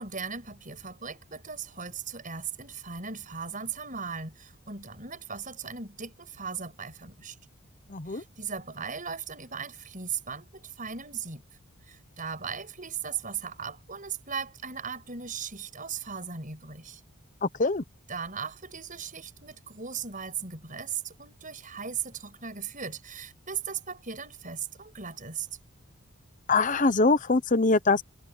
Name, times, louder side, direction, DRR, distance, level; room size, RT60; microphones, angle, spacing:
voice 1, 0.0-7.4 8.1-11.4 11.9-17.0 18.1-25.5, right 6 dB, 40° right, 7.2 m, -37 dB
voice 2, 7.9-8.2 17.6-17.8 26.5-28.0, left 3 dB, 35° left, 0.9 m, -23 dB
head